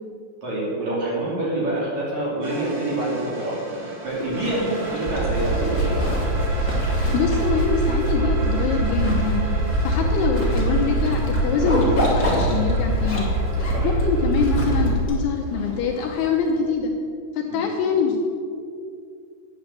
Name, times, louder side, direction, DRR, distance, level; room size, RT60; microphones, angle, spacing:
voice 1, 0.4-3.6 4.0-6.0 13.7-14.0 17.5-17.6, right 1 dB, 45° right, -5 dB, 3.7 m, -26 dB
sound 1, 2.4-14.8, right 1 dB, 65° right, 5.4 m, -36 dB
Zipper (clothing), 4.1-16.6, left 1 dB, 30° left, 1.4 m, -31 dB
sound 2, 5.1-15.1, right 2 dB, 85° right, 3.8 m, -23 dB
voice 2, 7.1-9.5 9.8-13.3 13.8-16.9 17.3-18.2, left 5 dB, 75° left, 1 dB, 2.7 m, -24 dB
10.0 x 8.8 x 7.5 m, 2.4 s
omnidirectional pair, 5.3 m